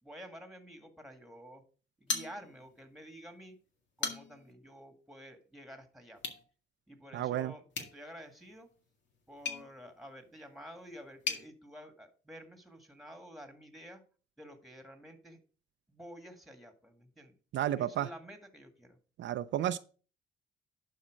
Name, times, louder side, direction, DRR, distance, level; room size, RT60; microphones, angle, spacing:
voice 1, 0.0-1.6 2.0-3.6 4.0-6.2 6.9-8.7 9.3-14.0 14.4-15.4 15.9-17.4 17.8-19.0, equal, ahead, 6 dB, 2.0 m, -50 dB
sound 1, 2.1-2.8 3.2-3.3 3.8-4.5 6.1-6.4 7.7-11.5, left 5 dB, 65° left, 1.9 m, -40 dB
voice 2, 7.1-7.5 17.5-18.1 19.2-19.8, right 12 dB, 70° right, 11 dB, 0.5 m, -32 dB
11.0 x 4.3 x 5.0 m, 0.38 s
cardioid pair, 90°, 20 cm